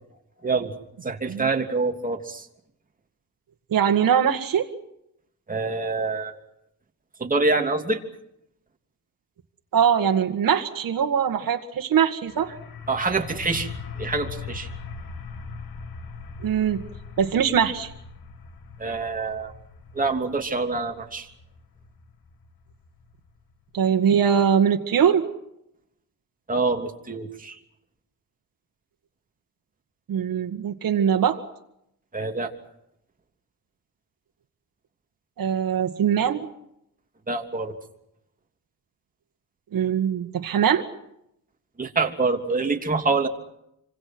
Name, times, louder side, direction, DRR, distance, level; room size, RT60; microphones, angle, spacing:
voice 1, 0.4-0.7 1.0-2.5 5.5-6.4 7.2-8.0 12.9-13.7 14.0-14.7 18.8-19.5 19.9-21.3 26.5-27.6 32.1-32.5 37.3-37.7 41.8-43.3, right 3 dB, 25° right, 3 dB, 3.1 m, -25 dB
voice 2, 3.7-4.7 9.7-12.5 16.4-16.8 17.2-17.9 23.7-25.2 30.1-31.4 35.4-36.5 39.7-40.8, right 8 dB, 70° right, 3 dB, 1.9 m, -22 dB
sound 1, 12.3-23.7, left 5 dB, 80° left, 2.5 m, -40 dB
27.5 x 26.0 x 6.2 m, 0.81 s
cardioid pair, 125°, 35 cm